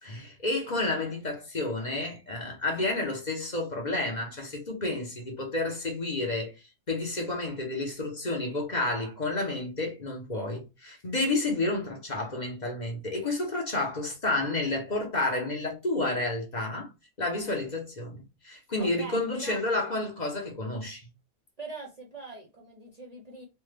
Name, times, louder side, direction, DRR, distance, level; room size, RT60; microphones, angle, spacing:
voice 1, 0.0-16.9 17.2-21.1, left 2 dB, 40° left, 0.9 m, -30 dB
voice 2, 18.8-19.6 21.6-23.4, right 3 dB, 45° right, 0.6 m, -42 dB
3.3 x 2.2 x 3.2 m
omnidirectional pair, 1.3 m